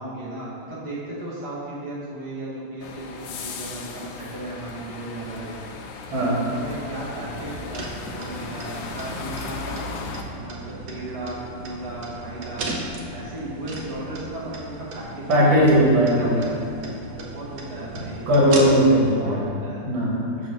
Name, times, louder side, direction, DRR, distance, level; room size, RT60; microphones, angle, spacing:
voice 1, 0.0-5.5 6.2-9.8 10.1-12.7 13.1-16.6 17.1-18.2 19.0-19.9, right 1 dB, 35° right, -8 dB, 1.8 m, -35 dB
sound 1, 2.8-10.2, left 4 dB, 75° left, 1.3 m, -36 dB
sound 2, 6.8-19.1, right 2 dB, 65° right, 1.2 m, -36 dB
voice 2, 15.3-16.5 18.3-19.4 19.8-20.5, equal, 80° right, -5 dB, 2.1 m, -18 dB
6.8 x 4.0 x 5.1 m, 2.4 s
omnidirectional pair, 2.1 m